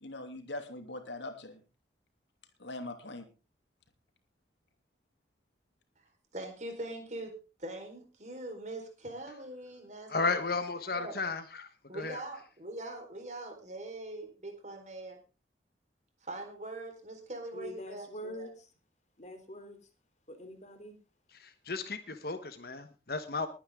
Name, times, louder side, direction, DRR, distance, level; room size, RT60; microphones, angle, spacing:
voice 1, 0.0-1.6 2.6-3.2, left 2 dB, 80° left, 2.8 m, -41 dB
voice 2, 6.3-7.3 7.6-10.3 11.0-11.2 11.9-15.2 16.2-18.5, right 2 dB, 40° right, 4.4 m, -42 dB
voice 3, 10.1-11.7 11.9-12.2 21.3-23.5, left 3 dB, 55° left, 1.2 m, -34 dB
voice 4, 17.5-18.7 19.2-19.8 20.3-21.0, equal, 40° left, 3.1 m, -44 dB
21.5 x 9.6 x 3.7 m
head